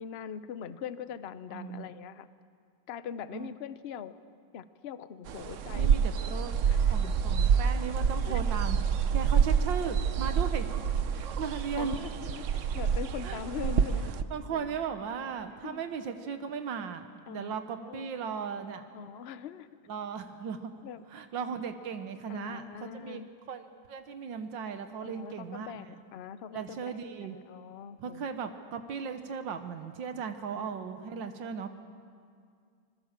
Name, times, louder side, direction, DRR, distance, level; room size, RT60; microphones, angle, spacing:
voice 1, 0.0-2.3 2.9-4.1 4.5-5.9 6.7-6.9 8.3-8.4 11.8-14.1 14.5-14.8 15.6-15.8 17.3-17.5 17.8-18.1 18.9-19.7 20.8-21.0 22.3-23.3 25.0-28.3 30.5-30.6, left 8 dB, 55° left, 13 dB, 0.7 m, -42 dB
voice 2, 1.5-1.9 3.3-3.6 5.8-6.5 6.8-8.8 9.1-10.7 11.1-12.0 13.2-13.7 14.3-18.8 19.9-20.7 21.1-23.2 23.5-25.7 26.5-27.4 28.0-31.7, right 6 dB, 80° right, 8 dB, 1.8 m, -37 dB
sound 1, 5.3-14.2, right 7 dB, 55° right, 0.9 m, -28 dB
26.0 x 21.0 x 7.4 m, 2.2 s
omnidirectional pair, 2.0 m